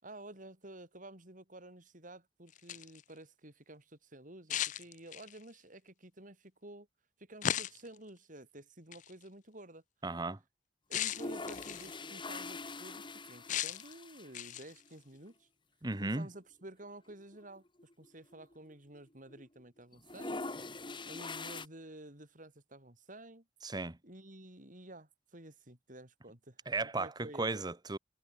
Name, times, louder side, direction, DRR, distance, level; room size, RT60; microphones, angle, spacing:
voice 1, 0.0-6.9 7.2-9.8 10.9-15.5 16.0-17.6 18.0-20.4 21.1-23.5 24.0-26.6 26.9-27.6, right 1 dB, 50° right, 7.4 m, -51 dB
sound 1, 2.5-3.0 4.5-5.4 7.4-8.0 8.9-9.1 10.9-12.0 13.5-13.9 14.3-14.8, left 10 dB, 45° left, 0.4 m, -36 dB
voice 2, 10.0-10.4 15.8-16.3 23.6-24.0 26.7-28.0, right 3 dB, 25° right, 1.1 m, -35 dB
sound 2, 10.9-14.5 14.9-15.0 15.1-15.2 16.2-16.4 16.8-16.9 17.1-19.0 19.3-19.6 19.9-21.7, left 3 dB, 30° left, 2.6 m, -44 dB
head